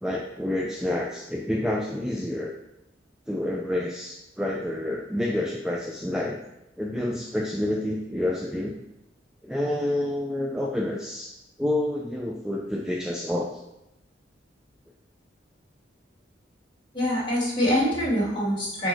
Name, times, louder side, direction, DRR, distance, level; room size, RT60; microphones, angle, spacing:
voice 1, 0.0-2.5 3.3-6.4 6.8-8.7 9.4-13.6, left 1 dB, 5° right, -1 dB, 0.3 m, -28 dB
voice 2, 16.9-18.9, equal, 25° left, -7 dB, 2.2 m, -24 dB
4.7 x 4.4 x 4.5 m, 0.89 s
head